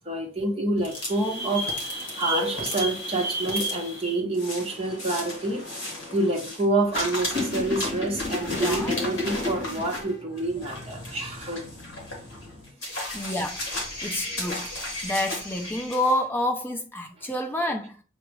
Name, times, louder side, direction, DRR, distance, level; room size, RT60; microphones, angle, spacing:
voice 1, 0.1-5.6 6.1-11.6, right 2 dB, 25° right, 1.0 m, -27 dB
sound 1, 0.8-6.6 6.9-16.1, left 1 dB, 55° left, 1.8 m, -32 dB
voice 2, 8.5-9.0 13.1-13.6 14.0-14.7 15.0-18.0, left 1 dB, 10° left, 0.5 m, -28 dB
6.9 x 2.4 x 3.2 m
head